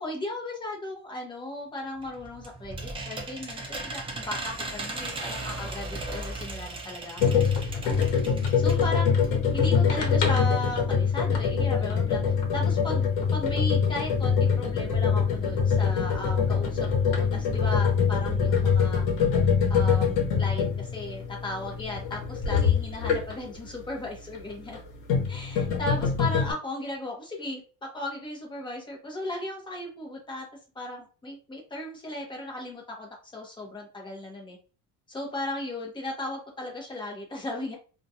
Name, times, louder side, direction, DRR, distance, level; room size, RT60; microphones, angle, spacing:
voice 1, 0.0-8.1 8.6-9.1 9.5-13.1 13.3-19.0 19.7-24.8 25.3-30.5 30.7-34.6 35.1-37.8, left 1 dB, 15° left, -1 dB, 0.7 m, -36 dB
sound 1, 2.0-8.9 9.2-9.3 9.6-9.7, right 2 dB, 15° right, 0.3 m, -37 dB
sound 2, 7.2-23.6 24.6-26.5, left 6 dB, 85° left, 0.9 m, -24 dB
2.5 x 2.2 x 2.6 m, 0.35 s
cardioid pair, 155°, 37 cm